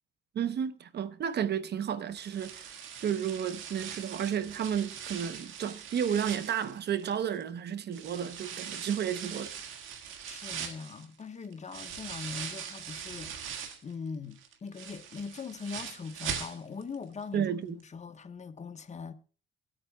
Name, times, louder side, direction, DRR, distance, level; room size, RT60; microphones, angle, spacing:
voice 1, 0.3-2.7 3.0-9.5 17.3-17.8, right 8 dB, 55° right, 0.8 m, -32 dB
sound 1, 2.1-7.4 7.9-13.9 14.3-16.9 17.2-17.3 17.8-17.9, right 8 dB, 80° right, 1.8 m, -41 dB
voice 2, 10.2-19.1, left 5 dB, 35° left, 1.1 m, -41 dB
24.0 x 8.6 x 2.3 m
cardioid pair, 90°, 20 cm